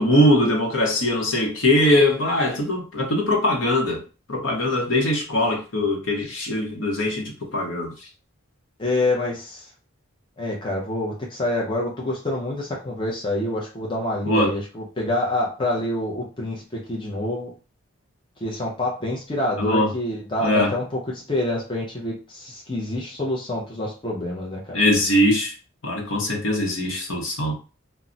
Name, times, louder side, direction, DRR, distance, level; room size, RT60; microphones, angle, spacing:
voice 1, 0.0-4.0 4.3-7.9 14.2-14.5 19.6-19.9 20.4-20.7 24.7-25.5 25.8-27.5, left 1 dB, 70° left, 0.8 m, -21 dB
voice 2, 8.8-9.7 10.4-17.5 18.4-21.0 21.3-24.8, left 1 dB, 25° left, 0.5 m, -27 dB
2.2 x 2.0 x 3.7 m
head